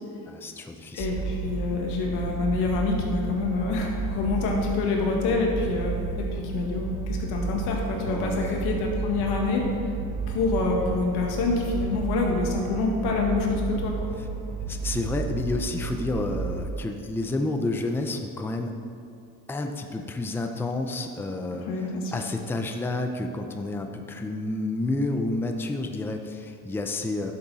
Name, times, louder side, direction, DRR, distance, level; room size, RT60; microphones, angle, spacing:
voice 1, 0.3-1.1 8.1-8.7 14.7-18.7 19.5-21.7 22.1-27.3, left 2 dB, 5° left, 5 dB, 0.5 m, -30 dB
voice 2, 0.9-9.6 10.3-14.1 21.5-22.1, left 3 dB, 85° left, 0 dB, 1.8 m, -27 dB
sound 1, 1.0-16.7, right 4 dB, 50° right, 1.3 m, -32 dB
11.5 x 7.0 x 4.1 m, 2.5 s
cardioid pair, 120°, 38 cm